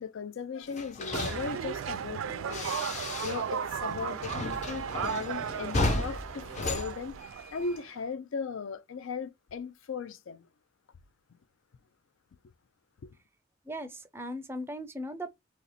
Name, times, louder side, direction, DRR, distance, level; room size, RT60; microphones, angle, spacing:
voice 1, 0.0-7.2 7.5-10.5 13.0-13.2, left 5 dB, 75° left, 0.4 m, -38 dB
sound 1, 0.7-3.6 3.9-7.8, left 2 dB, 35° left, 0.6 m, -35 dB
sound 2, 1.1-8.0, right 8 dB, 80° right, 0.3 m, -36 dB
voice 2, 13.7-15.3, equal, 10° right, 0.4 m, -38 dB
2.9 x 2.8 x 4.0 m
head